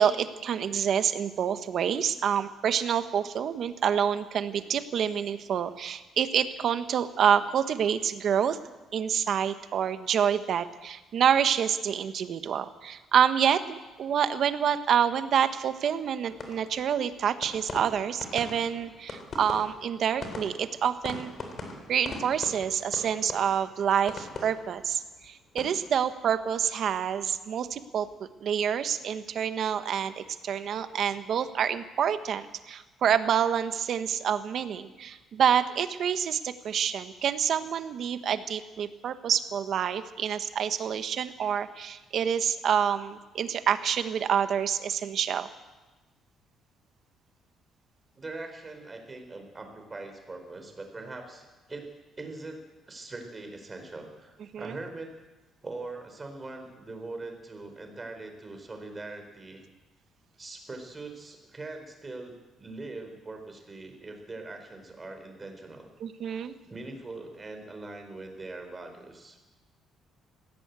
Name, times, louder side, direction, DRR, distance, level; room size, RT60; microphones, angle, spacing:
voice 1, 0.0-8.6 8.9-21.3 21.9-28.1 28.4-45.5 54.5-54.7 66.0-66.5, right 8 dB, 55° right, 10 dB, 1.3 m, -27 dB
sound 1, 16.2-27.4 27.7-28.2, left 3 dB, 40° left, 3.9 m, -42 dB
voice 2, 48.2-51.9 52.2-52.6 52.9-55.1 55.6-59.6 60.4-65.9 66.6-69.4, right 2 dB, 20° right, 4 dB, 4.3 m, -42 dB
20.5 x 16.5 x 8.3 m, 1.2 s
cardioid pair, 130°, 0 cm